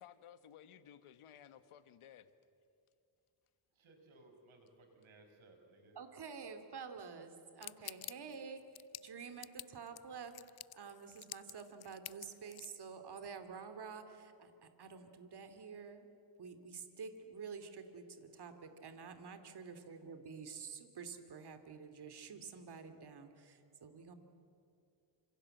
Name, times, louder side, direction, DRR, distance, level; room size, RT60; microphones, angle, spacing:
voice 1, 0.0-2.3, left 9 dB, 80° left, 12 dB, 1.5 m, -57 dB
voice 2, 3.8-6.0, right 2 dB, 70° right, 4 dB, 5.9 m, -62 dB
voice 3, 5.9-8.6 9.0-10.3 10.7-16.1 16.4-24.1, right 5 dB, 50° right, 8 dB, 2.8 m, -49 dB
sound 1, 7.6-12.8, left 13 dB, 50° left, 0.6 m, -49 dB
28.0 x 26.5 x 7.9 m, 2.7 s
cardioid pair, 115°, 49 cm